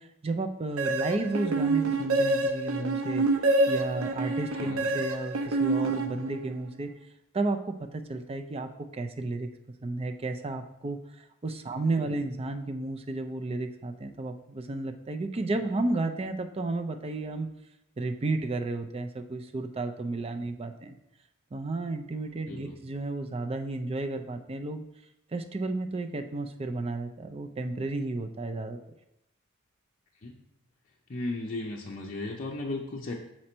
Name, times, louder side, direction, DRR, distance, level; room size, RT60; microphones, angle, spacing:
voice 1, 0.0-3.3 3.7-6.9 7.3-9.5 9.8-17.5 18.0-21.0 21.5-24.8 25.3-28.8, right 2 dB, 30° right, 6 dB, 0.5 m, -32 dB
sound 1, 0.8-6.6, right 2 dB, 80° right, 0.6 m, -27 dB
voice 2, 4.5-4.9 12.0-12.2 22.5-22.8 30.2-30.4 31.1-33.1, left 2 dB, 40° left, -2 dB, 0.6 m, -36 dB
6.2 x 4.3 x 4.4 m, 0.84 s
head